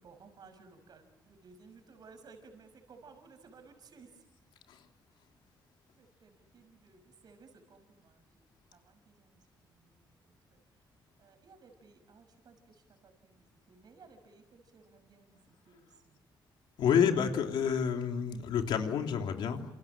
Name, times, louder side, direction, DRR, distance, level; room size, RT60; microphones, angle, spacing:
voice 1, 0.0-4.2 6.0-10.8 11.2-16.2, right 4 dB, 60° right, 7 dB, 6.1 m, -58 dB
voice 2, 16.8-19.6, left 7 dB, 85° left, 4 dB, 3.1 m, -29 dB
28.0 x 27.5 x 7.5 m, 0.94 s
cardioid pair, 105°, 8 cm